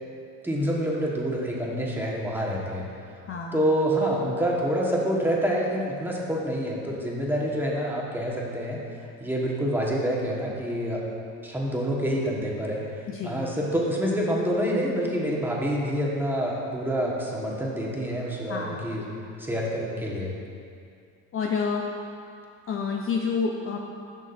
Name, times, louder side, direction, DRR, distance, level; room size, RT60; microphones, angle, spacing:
voice 1, 0.4-2.8 3.5-8.8 9.2-11.0 11.4-19.1 19.4-20.3, equal, 5° right, -4 dB, 1.5 m, -27 dB
voice 2, 3.3-3.6 13.1-13.4 18.5-18.9 21.3-21.8 22.7-23.8, left 5 dB, 40° left, 0 dB, 0.6 m, -28 dB
11.5 x 6.2 x 2.7 m, 2.4 s
cardioid pair, 95°, 34 cm